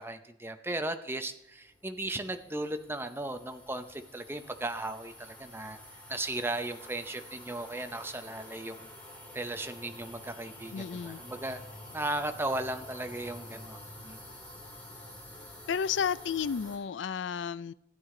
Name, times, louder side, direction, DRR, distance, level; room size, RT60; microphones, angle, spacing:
voice 1, 0.0-5.8 6.1-8.9 9.3-11.6 11.9-13.8 14.0-14.2, right 2 dB, 10° right, 7 dB, 0.7 m, -36 dB
sound 1, 1.6-16.8, left 1 dB, 10° left, 2.5 m, -49 dB
voice 2, 10.7-11.2 15.7-17.7, left 7 dB, 70° left, 18 dB, 0.4 m, -32 dB
16.0 x 9.1 x 3.8 m, 0.78 s
head